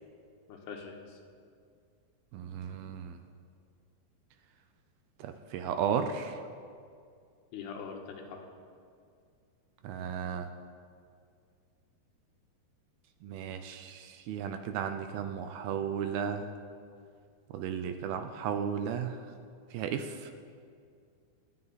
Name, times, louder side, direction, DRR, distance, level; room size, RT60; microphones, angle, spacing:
voice 1, 0.5-1.2 7.5-8.4, left 5 dB, 85° left, 2 dB, 3.4 m, -43 dB
voice 2, 2.3-3.1 5.2-6.4 9.8-10.5 13.2-16.4 17.5-19.1 19.7-20.2, right 7 dB, 80° right, 7 dB, 2.4 m, -34 dB
25.5 x 9.5 x 4.1 m, 2.3 s
omnidirectional pair, 4.7 m